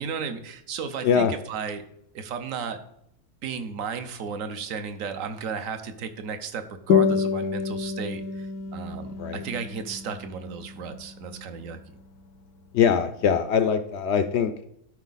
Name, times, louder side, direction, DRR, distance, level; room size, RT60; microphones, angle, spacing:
voice 1, 0.0-1.8 2.1-2.8 3.4-11.8, right 6 dB, 65° right, 9 dB, 1.2 m, -34 dB
sound 1, 6.9-11.9, left 6 dB, 90° left, 1.2 m, -28 dB
voice 2, 12.7-14.5, left 7 dB, 70° left, 10 dB, 0.6 m, -22 dB
12.0 x 4.6 x 4.0 m, 0.76 s
omnidirectional pair, 1.6 m